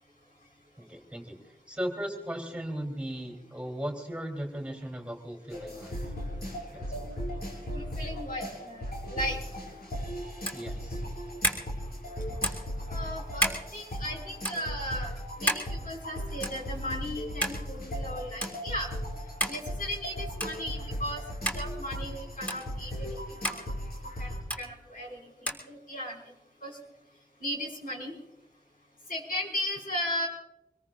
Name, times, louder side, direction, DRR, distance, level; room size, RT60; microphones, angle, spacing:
voice 1, 0.8-1.4 1.7-6.0 6.7-7.0 10.5-11.0, equal, 10° right, 3 dB, 3.2 m, -37 dB
sound 1, 5.5-24.4, equal, 85° left, 5.6 m, -37 dB
voice 2, 7.7-9.4 12.9-15.1 15.4-18.9 19.5-21.2 21.5-23.2 23.5-23.6 24.2-24.3 24.6-26.2 26.6-26.8 27.4-28.1 29.1-30.3, equal, 65° left, -1 dB, 5.4 m, -36 dB
sound 2, 10.4-10.7 11.4-11.7 12.4-12.7 13.4-13.6 14.4-14.6 15.5-15.7 16.4-16.6 17.4-17.6 18.4-18.5 19.4-19.6 20.4-20.6 21.4-21.6 22.5-22.6 23.4-23.6 24.5-24.6 25.5-25.6, equal, 10° left, 3.2 m, -30 dB
25.0 x 21.5 x 2.5 m, 0.88 s
wide cardioid pair, 70°, 16 cm